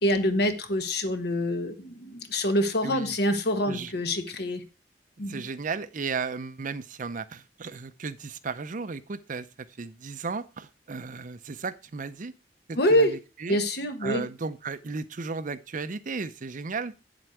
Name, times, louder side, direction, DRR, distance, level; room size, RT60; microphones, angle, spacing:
voice 1, 0.0-4.6 5.2-5.4 12.8-13.1 13.5-14.3, left 1 dB, 60° left, 8 dB, 1.3 m, -26 dB
voice 2, 2.8-3.1 3.7-3.9 5.3-9.5 9.8-12.3 12.7-13.6 14.0-16.9, right 4 dB, 45° right, 13 dB, 0.6 m, -35 dB
8.5 x 7.8 x 4.6 m, 0.31 s
head